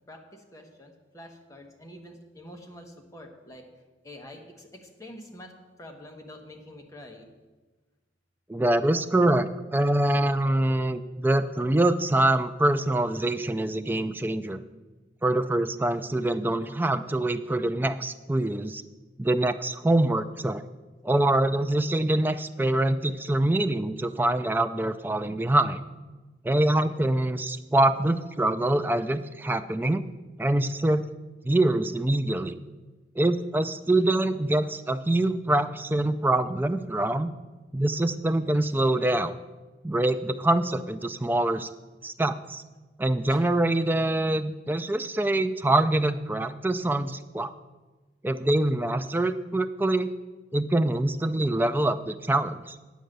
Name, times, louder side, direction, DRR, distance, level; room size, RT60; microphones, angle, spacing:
voice 1, 0.1-3.6 4.0-5.5 5.8-7.3 43.3-43.5, left 1 dB, 15° left, 2 dB, 1.1 m, -46 dB
voice 2, 8.5-14.6 15.2-18.8 19.2-20.6 21.0-25.8 26.4-30.0 30.4-31.1 31.4-32.5 33.2-37.3 37.7-39.4 39.8-41.7 42.0-42.6 43.0-47.5 48.2-50.1 50.5-52.8, right 1 dB, 10° right, 10 dB, 0.3 m, -25 dB
9.2 x 6.4 x 6.5 m, 1.2 s
head